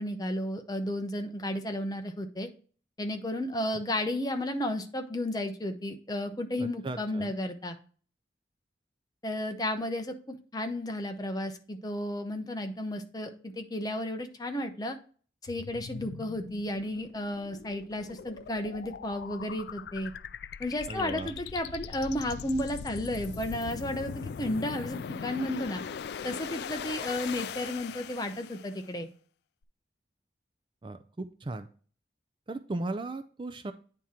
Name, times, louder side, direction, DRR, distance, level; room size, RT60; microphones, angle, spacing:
voice 1, 0.0-2.5 3.0-7.8 9.2-15.0 15.4-20.1 20.6-25.8 26.2-29.1, left 1 dB, 20° left, 6 dB, 0.7 m, -33 dB
voice 2, 6.6-7.3 20.9-21.3 30.8-31.7 32.5-33.7, right 2 dB, 25° right, 9 dB, 0.4 m, -36 dB
sound 1, 15.5-28.9, left 7 dB, 65° left, 0.3 m, -41 dB
9.0 x 3.7 x 4.3 m, 0.41 s
head